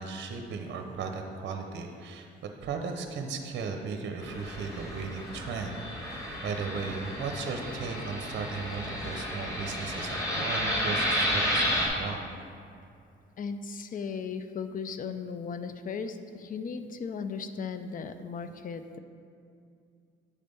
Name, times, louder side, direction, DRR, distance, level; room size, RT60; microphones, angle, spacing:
voice 1, 0.0-2.3 2.6-12.3, right 5 dB, 65° right, 4 dB, 0.7 m, -36 dB
Fixed-wing aircraft airplane, 4.2-11.9, equal, 15° left, 1.5 m, -32 dB
voice 2, 13.4-19.0, left 5 dB, 45° left, 9 dB, 0.4 m, -36 dB
8.4 x 3.4 x 5.3 m, 2.4 s
cardioid pair, 90°, 20 cm